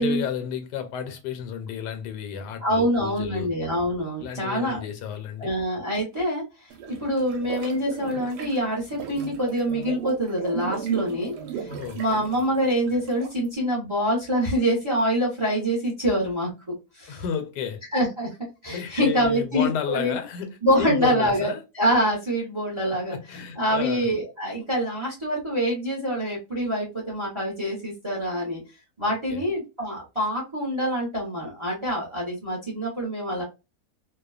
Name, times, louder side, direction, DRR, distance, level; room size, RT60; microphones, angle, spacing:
voice 1, 0.0-3.5 4.2-5.5 11.7-12.0 17.1-17.8 18.7-21.6 23.1-24.1 29.3-29.4, left 7 dB, 85° left, 1.2 m, -32 dB
voice 2, 2.6-4.8 5.4-6.4 6.9-11.7 11.9-16.5 16.9-17.2 17.9-18.3 18.6-20.2 20.6-28.6 29.0-33.4, equal, 25° right, 0.7 m, -25 dB
sound 1, 6.7-13.5, right 7 dB, 80° right, 1.1 m, -35 dB
2.7 x 2.2 x 2.3 m
omnidirectional pair, 1.8 m